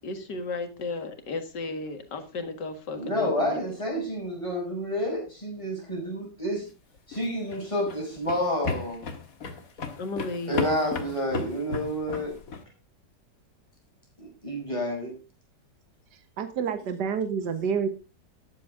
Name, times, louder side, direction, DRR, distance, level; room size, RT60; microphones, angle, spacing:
voice 1, 0.0-3.6 10.0-11.2, left 3 dB, 75° left, 9 dB, 2.4 m, -34 dB
voice 2, 2.9-6.7 7.1-9.0 10.5-12.4 14.2-15.1, equal, 15° left, -1 dB, 5.5 m, -29 dB
sound 1, 7.0-12.6, left 5 dB, 55° left, 2.0 m, -35 dB
voice 3, 16.4-17.9, right 6 dB, 75° right, 9 dB, 1.9 m, -28 dB
13.5 x 10.5 x 3.7 m, 0.29 s
omnidirectional pair, 1.9 m